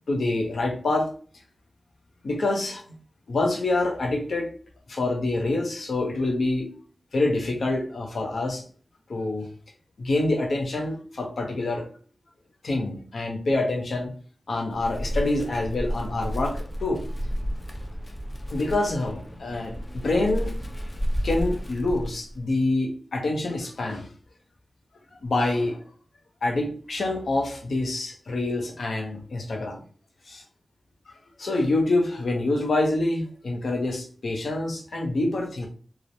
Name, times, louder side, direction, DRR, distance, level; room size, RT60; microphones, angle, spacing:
voice 1, 0.1-1.1 2.2-2.8 3.3-4.5 4.9-6.7 7.1-8.6 9.1-9.5 10.0-11.9 12.6-14.1 14.5-17.0 18.5-20.5 21.2-24.1 25.2-25.8 26.4-29.8 30.3-30.4 31.4-35.7, left 2 dB, 75° left, 1 dB, 0.6 m, -26 dB
Wind, 14.7-22.5, equal, 25° left, 0.4 m, -32 dB
3.0 x 2.0 x 2.6 m, 0.43 s
wide cardioid pair, 115°, 0 cm